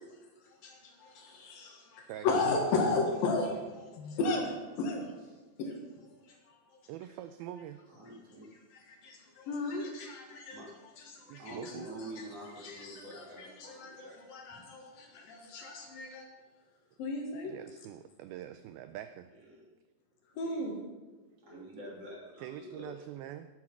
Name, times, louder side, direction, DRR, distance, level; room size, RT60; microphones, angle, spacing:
voice 1, 0.6-5.1 5.6-5.8 6.1-6.6 8.5-10.6 11.0-16.3 17.0-17.5 20.4-20.8, left 3 dB, 65° left, 1 dB, 3.0 m, -35 dB
voice 2, 6.9-7.8 11.3-11.9 17.4-19.3 21.5-21.6 22.4-23.5, right 12 dB, 85° right, 10 dB, 2.1 m, -44 dB
voice 3, 7.9-8.5 10.5-10.7 11.4-14.2 14.5-14.6 19.3-19.7 20.4-20.7 21.4-22.9, right 1 dB, 40° right, -4 dB, 3.8 m, -47 dB
11.5 x 11.0 x 5.9 m, 1.2 s
omnidirectional pair, 4.9 m